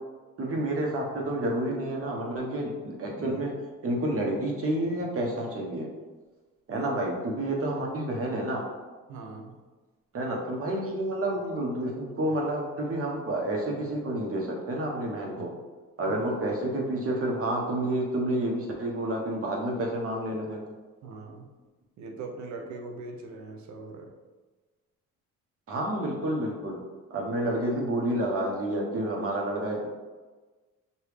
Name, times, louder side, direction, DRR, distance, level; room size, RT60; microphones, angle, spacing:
voice 1, 0.4-3.5 3.8-5.9 6.7-8.7 10.1-15.5 16.0-20.6 25.7-26.8 27.1-29.9, right 1 dB, 50° right, -1 dB, 1.1 m, -29 dB
voice 2, 9.1-9.6 21.0-21.5 22.0-24.1, right 3 dB, 70° right, 2 dB, 0.8 m, -41 dB
5.1 x 2.6 x 3.2 m, 1.3 s
cardioid pair, 90°, 30 cm